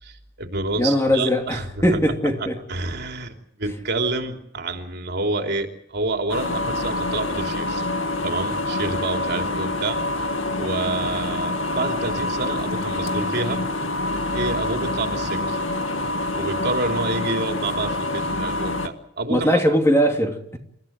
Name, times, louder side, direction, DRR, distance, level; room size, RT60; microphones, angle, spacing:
voice 1, 0.0-2.0 2.4-3.3 3.6-7.9 8.2-10.0 10.6-13.6 14.3-15.6 16.3-19.5, right 2 dB, 60° right, 3.3 m, -28 dB
voice 2, 0.8-2.6 19.3-20.6, equal, 15° left, 2.9 m, -20 dB
sound 1, 6.3-18.9, left 2 dB, 75° left, 2.1 m, -26 dB
29.0 x 15.0 x 7.8 m
head